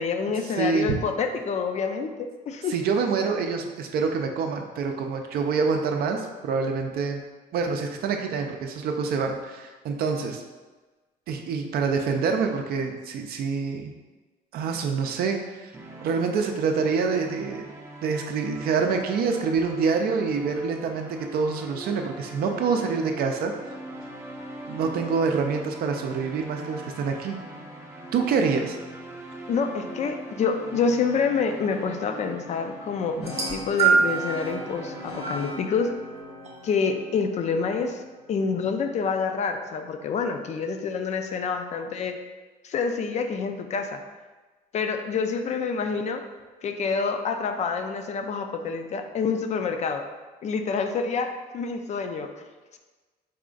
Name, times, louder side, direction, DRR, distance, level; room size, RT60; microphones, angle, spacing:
voice 1, 0.0-2.8 29.5-35.9 36.6-38.0 38.3-42.2 42.6-44.0 44.7-46.2 46.6-50.1 50.4-52.3 52.7-52.8, left 5 dB, 40° left, 6 dB, 0.4 m, -27 dB
voice 2, 0.6-1.0 2.7-7.2 7.5-10.4 11.3-13.9 14.5-15.7 16.0-17.7 18.0-23.5 24.7-27.4 28.1-28.8, right 5 dB, 65° right, 4 dB, 0.5 m, -26 dB
sound 1, 15.7-35.4, right 1 dB, 15° right, 0.5 m, -42 dB
sound 2, 33.2-39.2, left 1 dB, 75° left, 1.0 m, -40 dB
sound 3, 33.2-34.3 35.2-35.4 36.5-36.6, right 5 dB, 40° right, 1.0 m, -22 dB
4.1 x 2.4 x 3.8 m, 1.3 s
cardioid pair, 110°, 17 cm